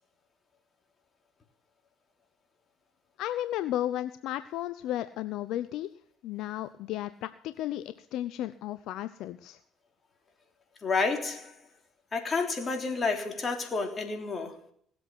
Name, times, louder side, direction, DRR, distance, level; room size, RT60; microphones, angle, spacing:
voice 1, 3.2-5.9 6.2-9.6, left 13 dB, 75° left, 0.6 m, -34 dB
voice 2, 10.8-11.5 12.1-14.6, left 4 dB, 35° left, 3.4 m, -30 dB
18.5 x 7.9 x 6.1 m
supercardioid pair, 75°, 0 cm